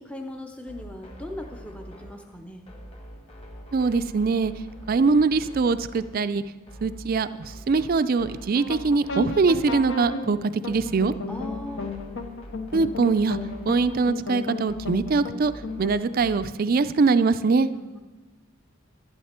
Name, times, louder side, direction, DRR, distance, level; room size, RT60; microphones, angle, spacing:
voice 1, 0.0-2.7 11.3-11.9 17.7-18.0, left 1 dB, 5° left, 3 dB, 0.6 m, -39 dB
sound 1, 0.7-16.6, equal, 30° left, 1.8 m, -44 dB
voice 2, 3.7-4.5 4.9-6.4 6.8-10.4 10.6-11.1 12.7-13.4 13.6-15.5 15.8-17.7, right 4 dB, 45° right, 14 dB, 0.4 m, -22 dB
sound 2, 8.5-15.9, left 3 dB, 65° left, 0.9 m, -34 dB
11.5 x 11.0 x 4.3 m, 1.2 s
head